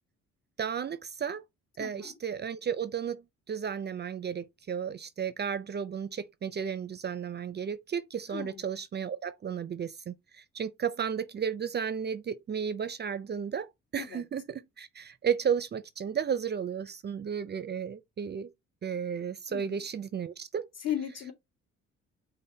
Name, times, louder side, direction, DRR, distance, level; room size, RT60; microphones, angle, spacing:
voice 1, 0.6-1.4 1.8-18.5 18.8-20.7, right 7 dB, 35° right, 0.4 m, -33 dB
voice 2, 1.8-2.2 8.3-8.6 14.0-14.2 19.5-19.8 20.8-21.3, left 10 dB, 55° left, 1.7 m, -36 dB
5.4 x 2.2 x 4.1 m
cardioid pair, 90°, 30 cm